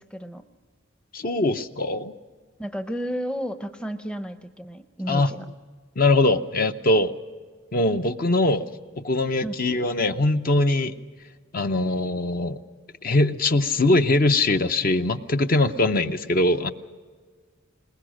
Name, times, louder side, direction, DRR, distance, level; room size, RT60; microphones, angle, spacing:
voice 1, 0.1-0.4 2.6-5.4 9.4-9.5, equal, 5° left, 9 dB, 0.6 m, -32 dB
voice 2, 1.1-2.1 5.1-5.3 6.0-7.2 7.7-8.7 9.0-10.9 11.5-12.6 13.0-16.7, left 2 dB, 45° left, 8 dB, 0.6 m, -22 dB
21.0 x 20.5 x 6.3 m, 1.5 s
head